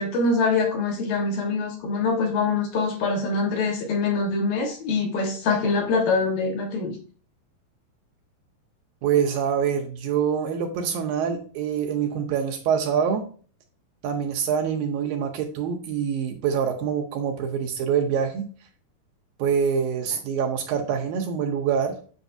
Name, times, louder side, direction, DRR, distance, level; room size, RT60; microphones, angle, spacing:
voice 1, 0.0-6.9, left 4 dB, 65° left, 1 dB, 2.8 m, -24 dB
voice 2, 9.0-13.2 14.0-18.5 19.4-21.9, right 7 dB, 75° right, 3 dB, 2.3 m, -25 dB
8.0 x 6.3 x 2.6 m, 0.41 s
omnidirectional pair, 4.5 m